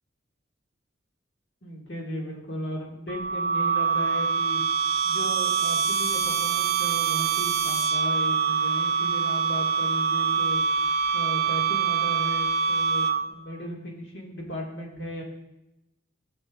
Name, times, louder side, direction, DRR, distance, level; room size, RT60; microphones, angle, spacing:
voice 1, 1.6-4.6 5.0-10.6 11.1-15.2, equal, 70° left, -1 dB, 1.8 m, -36 dB
sound 1, 3.1-13.5, right 6 dB, 55° right, 0.4 m, -25 dB
14.5 x 6.9 x 2.3 m, 0.90 s
head